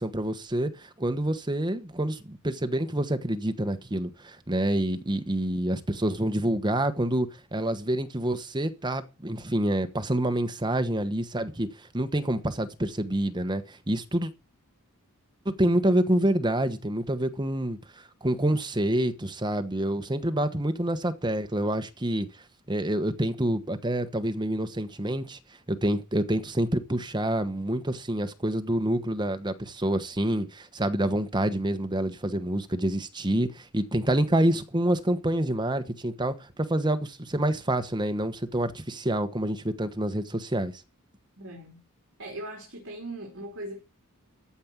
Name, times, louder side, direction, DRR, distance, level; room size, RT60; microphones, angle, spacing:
voice 1, 0.0-11.7 11.9-14.3 15.4-17.8 18.2-22.3 22.7-25.4 25.7-36.3 36.7-40.7, right 1 dB, 20° right, 1.2 m, -27 dB
voice 2, 41.4-41.8 42.2-43.8, right 1 dB, 55° right, 3.7 m, -39 dB
14.0 x 5.3 x 8.8 m
head